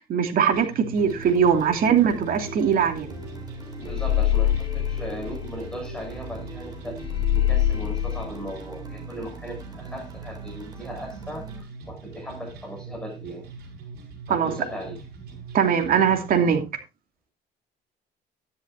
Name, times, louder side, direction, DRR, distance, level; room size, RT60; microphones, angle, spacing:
voice 1, 0.1-3.1 14.3-14.5 15.5-16.6, right 7 dB, 60° right, 2.7 m, -21 dB
sound 1, 0.5-16.5, right 4 dB, 75° right, 5.1 m, -42 dB
sound 2, 1.0-11.6, right 2 dB, 25° right, 4.1 m, -42 dB
sound 3, 2.9-3.1 3.4-6.3 6.6-6.7 7.0-8.3, left 11 dB, 30° left, 2.5 m, -24 dB
voice 2, 3.8-7.0 7.3-13.4 14.3-15.0, equal, 5° left, 7.5 m, -37 dB
13.0 x 11.0 x 2.7 m
cardioid pair, 110°, 17 cm